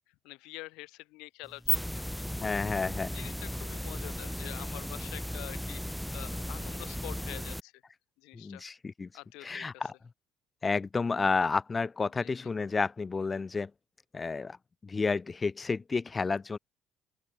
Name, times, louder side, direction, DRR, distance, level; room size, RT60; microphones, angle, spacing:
voice 1, 0.2-2.3 3.1-7.7 8.2-8.6 9.1-9.9 12.2-12.3, left 22 dB, 60° left, 2.3 m, -46 dB
sound 1, 1.4-7.6, equal, 5° left, 2.7 m, -35 dB
voice 2, 2.4-3.1 8.3-9.1 9.4-9.9 10.6-13.7 14.1-14.6 14.8-16.6, left 4 dB, 25° left, 0.8 m, -31 dB
open air
figure-of-eight pair, 55°, 0 cm